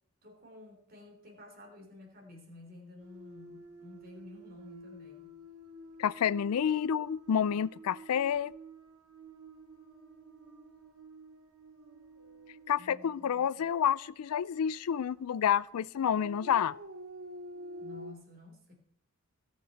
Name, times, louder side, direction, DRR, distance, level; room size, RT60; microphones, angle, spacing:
voice 1, 0.2-5.3 12.8-13.6 17.8-18.7, left 2 dB, 40° right, 3.3 m, -52 dB
sound 1, 3.0-15.0 16.1-18.1, right 1 dB, 80° right, 1.8 m, -50 dB
voice 2, 6.0-8.5 12.7-16.7, left 8 dB, 85° left, 0.4 m, -29 dB
20.5 x 7.6 x 4.1 m
head